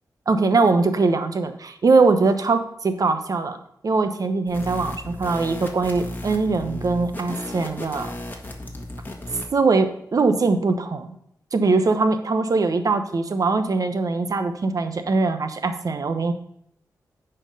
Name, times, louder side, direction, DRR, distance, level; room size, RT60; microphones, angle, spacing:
voice 1, 0.3-3.6 3.8-8.1 9.5-11.1 11.5-16.3, right 3 dB, 60° right, 8 dB, 0.9 m, -21 dB
sound 1, 4.5-9.5, left 1 dB, 30° left, 1.6 m, -35 dB
10.0 x 4.5 x 5.2 m, 0.74 s
cardioid pair, 70°, 7 cm